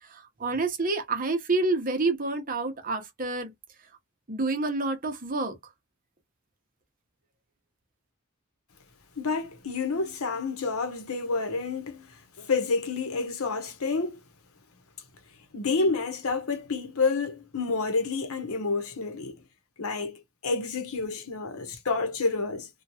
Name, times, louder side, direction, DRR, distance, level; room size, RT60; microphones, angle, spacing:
voice 1, 0.0-3.5 4.3-5.6, right 3 dB, 40° right, 0.8 m, -28 dB
voice 2, 9.2-14.2 15.5-19.4 19.8-22.7, left 4 dB, 80° left, 0.9 m, -29 dB
3.0 x 2.3 x 2.7 m
head